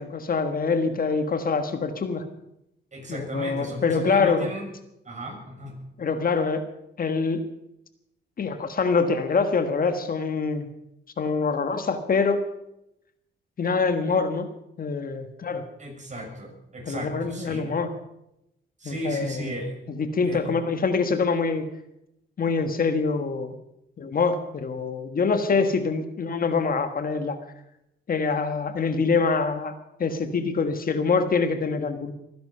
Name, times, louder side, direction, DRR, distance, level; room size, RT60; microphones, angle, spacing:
voice 1, 0.0-2.2 3.1-4.5 6.0-6.6 7.0-7.4 8.4-10.7 11.2-12.4 13.6-14.5 14.8-15.6 16.9-17.9 18.8-19.6 19.9-21.7 22.4-23.5 24.0-27.4 28.1-29.7 30.0-32.1, left 4 dB, 45° left, 8 dB, 1.5 m, -25 dB
voice 2, 2.9-4.7 5.1-5.8 15.8-17.7 18.8-19.7 20.2-20.5, right 1 dB, 35° right, 1 dB, 6.9 m, -35 dB
22.5 x 10.5 x 5.6 m, 0.83 s
cardioid pair, 80°, 20 cm